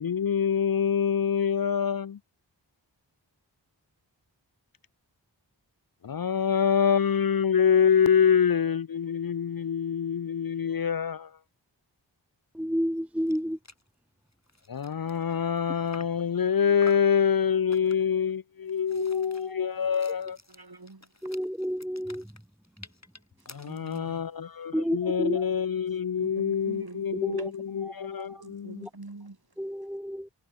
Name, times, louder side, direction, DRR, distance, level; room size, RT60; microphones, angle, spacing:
voice 1, 0.0-2.2 6.0-11.4 14.7-20.4 23.5-28.9, left 7 dB, 55° left, 0.5 m, -25 dB
voice 2, 12.5-13.6 18.9-19.8 21.2-22.3 24.7-25.4 27.3-27.5 27.9-28.4 29.6-30.3, equal, 5° right, 0.7 m, -31 dB
sound 1, 13.0-13.1 13.3-13.4 13.6-13.9 14.3-16.3 16.8-17.2 17.7-18.2 18.7-24.1, left 2 dB, 40° left, 4.3 m, -49 dB
voice 3, 20.5-21.1 23.4-24.4 24.7-25.1 26.2-29.6, right 3 dB, 55° right, 5.4 m, -46 dB
wide cardioid pair, 50°, 43 cm